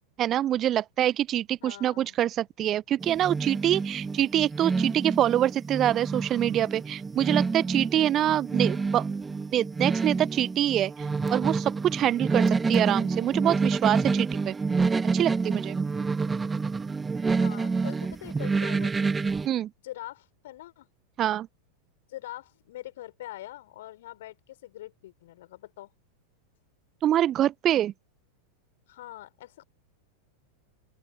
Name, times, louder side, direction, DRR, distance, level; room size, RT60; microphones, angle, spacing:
voice 1, 0.2-9.1 9.5-14.5 15.1-15.8 19.4-19.7 21.2-21.5 27.0-27.9, right 12 dB, 30° right, 0.8 m, -25 dB
voice 2, 1.6-2.2 17.3-19.1 19.8-20.9 22.1-25.9 28.9-29.6, left 15 dB, 55° left, 5.5 m, -43 dB
sound 1, 3.0-19.5, right 4 dB, 15° right, 2.5 m, -28 dB
open air
figure-of-eight pair, 90°, 0 cm